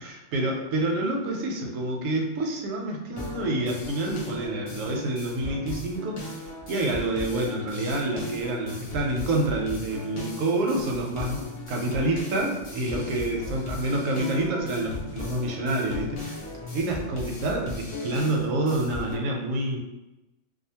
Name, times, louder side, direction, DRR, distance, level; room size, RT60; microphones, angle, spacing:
voice 1, 0.0-16.4 16.7-19.8, right 2 dB, 85° right, 1 dB, 1.0 m, -28 dB
sound 1, 3.2-19.2, left 2 dB, 45° left, 0.4 m, -37 dB
2.5 x 2.4 x 2.7 m, 0.96 s
omnidirectional pair, 1.3 m